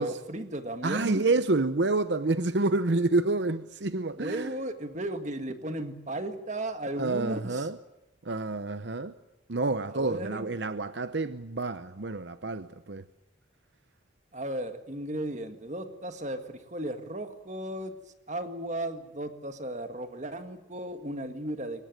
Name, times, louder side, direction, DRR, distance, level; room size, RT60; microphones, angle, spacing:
voice 1, 0.0-1.2 4.2-7.7 9.9-10.5 14.3-18.0 18.3-21.8, right 1 dB, 40° right, 1.8 m, -35 dB
voice 2, 0.8-4.5 7.0-7.8 8.2-9.1 9.5-13.0, right 2 dB, 65° right, 0.8 m, -28 dB
23.5 x 19.5 x 9.1 m
head